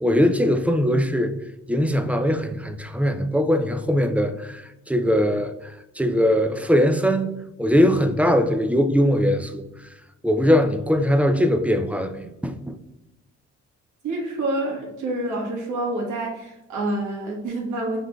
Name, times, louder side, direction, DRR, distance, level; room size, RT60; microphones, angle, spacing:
voice 1, 0.0-1.3 1.7-9.7 10.2-12.8, equal, 5° right, 0.3 m, -21 dB
voice 2, 14.0-18.0, right 2 dB, 85° right, 1.5 m, -27 dB
5.6 x 3.3 x 2.3 m
cardioid pair, 90°, 30 cm